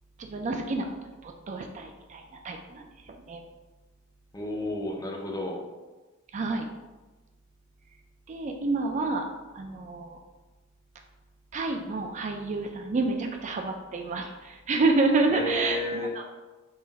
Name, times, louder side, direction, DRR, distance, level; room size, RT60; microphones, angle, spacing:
voice 1, 0.2-0.9 1.2-3.4 6.3-6.7 8.3-9.3 9.5-10.2 11.5-16.2, right 3 dB, 35° right, 3 dB, 0.3 m, -29 dB
voice 2, 4.3-5.7 15.3-16.1, left 1 dB, 15° left, 0 dB, 0.5 m, -32 dB
3.8 x 2.5 x 4.1 m, 1.2 s
head